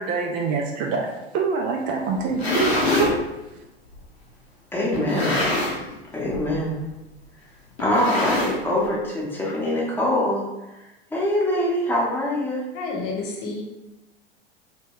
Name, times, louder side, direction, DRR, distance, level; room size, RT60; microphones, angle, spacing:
voice 1, 0.0-3.2, right 5 dB, 30° right, 0 dB, 0.4 m, -25 dB
sound 1, 2.2-3.2 3.9-4.0 4.9-5.9 6.2-6.5 6.8-6.9 7.8-8.9, left 2 dB, 85° left, 0.8 m, -24 dB
voice 2, 4.7-5.4 6.1-6.8 7.8-10.4 11.1-12.6, left 1 dB, 5° left, -4 dB, 0.9 m, -23 dB
voice 3, 12.7-13.6, left 3 dB, 45° left, 0 dB, 0.9 m, -29 dB
3.0 x 2.2 x 3.4 m, 0.97 s
figure-of-eight pair, 85°, 31 cm